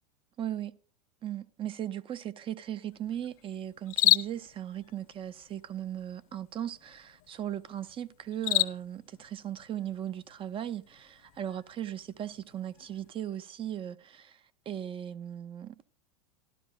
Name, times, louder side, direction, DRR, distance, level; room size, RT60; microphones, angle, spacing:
voice 1, 0.4-0.7 1.2-14.4 14.7-15.8, right 11 dB, 25° right, 0.5 m, -37 dB
sound 1, 2.9-13.1, left 17 dB, 60° left, 0.9 m, -35 dB
12.5 x 12.5 x 2.3 m
hypercardioid pair, 100°, 20 cm